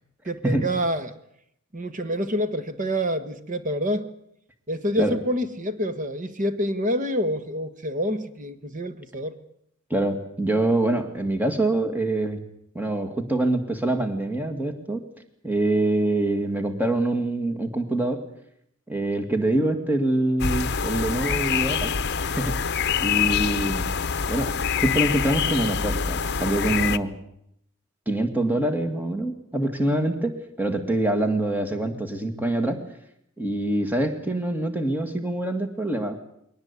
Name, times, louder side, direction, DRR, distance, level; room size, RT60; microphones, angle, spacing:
voice 1, 0.2-1.1 1.7-4.1 4.7-9.3, equal, 35° right, 10 dB, 1.5 m, -27 dB
voice 2, 9.9-12.4 12.7-15.0 15.4-18.2 18.9-21.9 22.2-22.6 23.0-23.9 24.3-27.1 28.1-32.8 33.4-36.2, right 1 dB, 10° right, 5 dB, 2.0 m, -25 dB
sound 1, 20.4-27.0, left 6 dB, 50° left, 0.8 m, -25 dB
22.0 x 18.5 x 8.3 m, 0.75 s
head